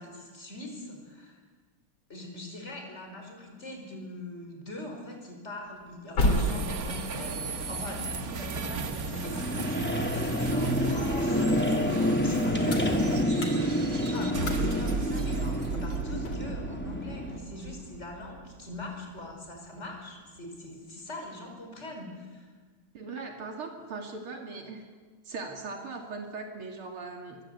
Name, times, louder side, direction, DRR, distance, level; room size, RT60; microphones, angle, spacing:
voice 1, 0.0-1.4 2.1-22.5, left 1 dB, 30° left, 2 dB, 5.4 m, -42 dB
sound 1, 5.7-10.7 11.2-16.6, left 1 dB, 65° left, 3.8 m, -34 dB
sound 2, 6.2-19.6, right 4 dB, 45° right, 1.9 m, -35 dB
sound 3, 7.6-17.4, equal, 5° left, 2.4 m, -29 dB
voice 2, 22.9-24.8 25.3-27.4, right 4 dB, 80° right, 3 dB, 3.3 m, -39 dB
27.0 x 22.5 x 8.2 m, 1.4 s
omnidirectional pair, 2.4 m